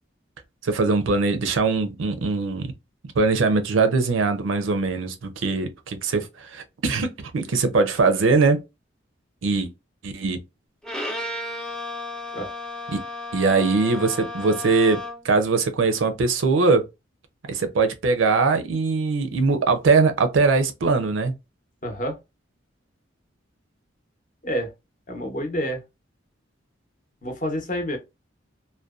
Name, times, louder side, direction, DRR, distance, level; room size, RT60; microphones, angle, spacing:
voice 1, 0.6-2.7 3.2-8.6 9.4-9.7 10.0-10.4 12.9-13.0 13.3-16.8 17.4-21.3, right 4 dB, 85° right, 0.5 m, -21 dB
Bowed string instrument, 10.8-15.3, left 1 dB, 5° left, 0.4 m, -33 dB
voice 2, 21.8-22.2 24.4-24.7 25.1-25.8 27.2-28.0, equal, 40° left, 0.7 m, -28 dB
2.6 x 2.1 x 2.3 m
head